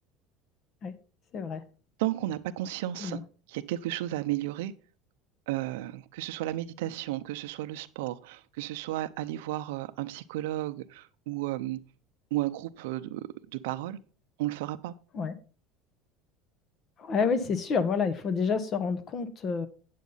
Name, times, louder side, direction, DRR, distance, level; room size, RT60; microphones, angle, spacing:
voice 1, 1.3-1.6 3.0-3.2 15.1-15.3 17.0-19.7, left 5 dB, 35° left, 1.1 m, -28 dB
voice 2, 2.0-3.2 3.5-4.7 5.5-11.8 12.3-14.0 14.4-14.9, right 15 dB, 85° right, 0.6 m, -33 dB
8.5 x 8.3 x 3.9 m
supercardioid pair, 130°, 0 cm